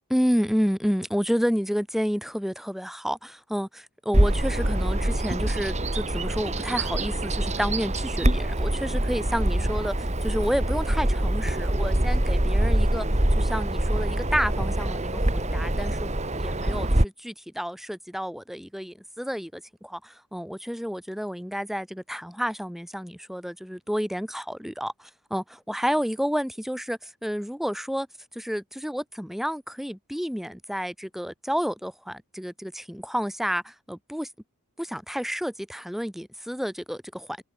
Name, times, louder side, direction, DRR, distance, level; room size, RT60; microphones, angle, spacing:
voice 1, 0.1-13.1 13.3-16.1 16.4-28.1 28.3-34.3 34.8-37.4, equal, ahead, 4.5 m, -30 dB
Bird vocalization bird call bird song, 4.1-17.0, right 1 dB, 30° right, 2.5 m, -24 dB
head